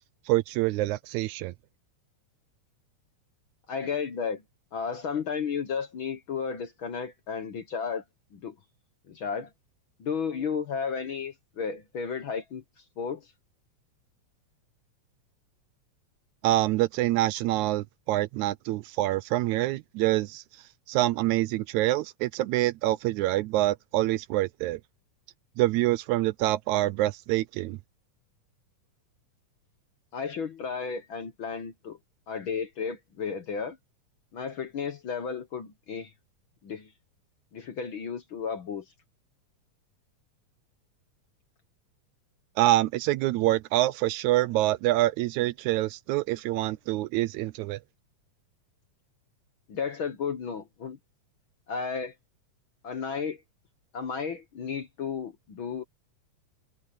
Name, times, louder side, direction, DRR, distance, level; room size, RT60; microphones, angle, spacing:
voice 1, 0.3-1.5 16.4-20.4 20.9-24.8 25.6-27.8 42.6-47.8, right 16 dB, 80° right, 1.8 m, -26 dB
voice 2, 3.7-4.4 4.7-8.0 8.3-8.6 9.1-9.5 10.0-12.6 13.0-13.3 30.1-32.0 32.3-33.8 34.3-36.1 36.6-36.9 37.5-38.8 49.7-51.0 51.7-52.1 52.8-53.4 53.9-55.8, left 6 dB, 55° left, 1.6 m, -33 dB
omnidirectional pair, 3.5 m